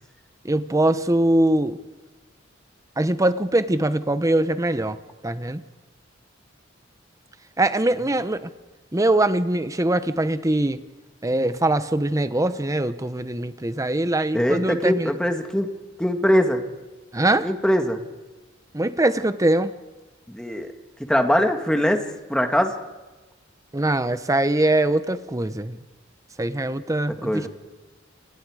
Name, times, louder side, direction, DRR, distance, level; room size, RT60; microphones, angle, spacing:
voice 1, 0.4-1.8 3.0-5.6 7.6-8.5 8.9-10.8 11.2-15.1 17.1-17.5 18.7-19.7 23.7-25.8 26.4-27.5, right 1 dB, 15° right, 12 dB, 0.9 m, -22 dB
voice 2, 14.3-15.7 16.0-16.6 17.4-18.0 20.3-20.7 21.1-22.0 22.3-22.8 27.2-27.5, equal, 5° left, 5 dB, 1.9 m, -22 dB
29.5 x 25.5 x 4.9 m, 1.2 s
head